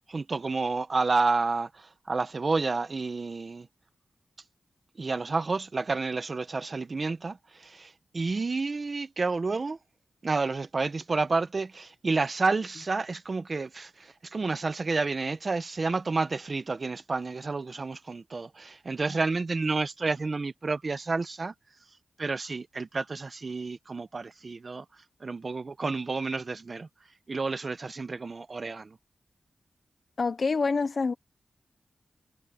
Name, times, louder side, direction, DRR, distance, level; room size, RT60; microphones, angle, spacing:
voice 1, 0.1-3.7 5.0-9.8 10.2-21.5 22.2-24.8 25.2-26.9 27.3-29.0, right 3 dB, 45° right, 1.1 m, -30 dB
voice 2, 30.2-31.1, left 4 dB, 55° left, 1.0 m, -26 dB
cardioid pair, 70°, 0 cm